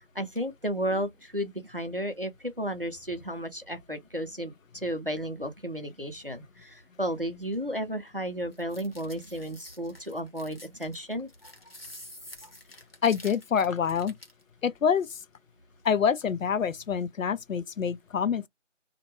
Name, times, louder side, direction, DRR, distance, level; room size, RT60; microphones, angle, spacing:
voice 1, 0.0-4.5 4.8-11.3, equal, 45° right, 0.5 m, -33 dB
sound 1, 8.5-14.4, left 1 dB, 50° left, 0.9 m, -48 dB
voice 2, 13.0-14.1 14.6-15.1 15.8-18.5, left 7 dB, 90° left, 0.5 m, -26 dB
2.2 x 2.1 x 2.9 m
figure-of-eight pair, 180°, 39 cm